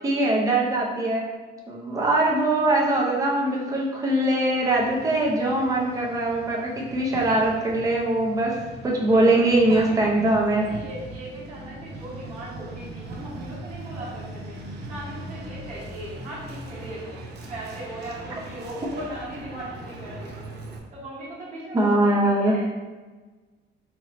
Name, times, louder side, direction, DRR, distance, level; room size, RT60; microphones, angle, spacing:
voice 1, 0.0-1.3 1.7-10.7 21.7-22.6, right 1 dB, 15° right, -2 dB, 0.6 m, -22 dB
Truck, 4.6-20.8, right 1 dB, 55° right, 0.7 m, -40 dB
voice 2, 9.7-10.0 10.6-14.6 14.9-17.2 17.5-20.5 20.9-22.7, right 1 dB, 35° right, -8 dB, 1.3 m, -38 dB
4.2 x 3.0 x 3.0 m, 1.3 s
cardioid pair, 150°, 20 cm